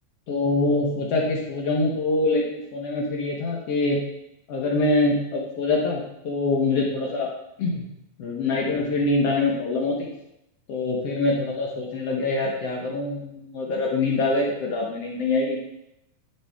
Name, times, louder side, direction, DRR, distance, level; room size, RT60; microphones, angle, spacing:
voice 1, 0.3-4.0 4.5-7.3 7.6-7.8 8.2-10.1 10.7-15.6, left 2 dB, 75° left, -1 dB, 1.4 m, -24 dB
10.5 x 7.7 x 3.5 m, 0.84 s
omnidirectional pair, 4.5 m